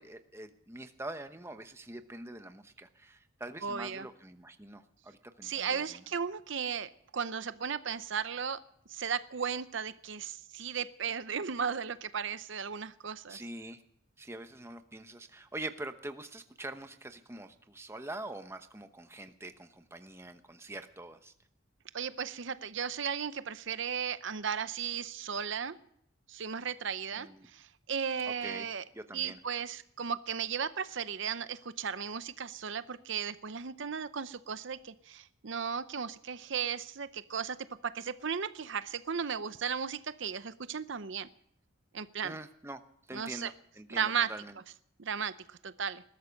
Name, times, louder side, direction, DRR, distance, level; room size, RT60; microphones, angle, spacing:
voice 1, 0.0-6.0 13.3-13.8 14.2-21.3 27.1-27.5 28.2-28.7 28.9-29.4 42.2-42.8 43.1-44.6, right 2 dB, 10° right, 8 dB, 1.0 m, -44 dB
voice 2, 3.6-4.1 5.4-8.6 8.9-13.4 21.9-25.7 26.3-27.3 27.5-28.8 29.1-37.6 37.8-41.3 41.9-42.3 43.1-43.5 43.9-44.3 45.0-46.0, right 7 dB, 60° right, 13 dB, 0.7 m, -35 dB
20.5 x 13.5 x 5.3 m, 0.73 s
head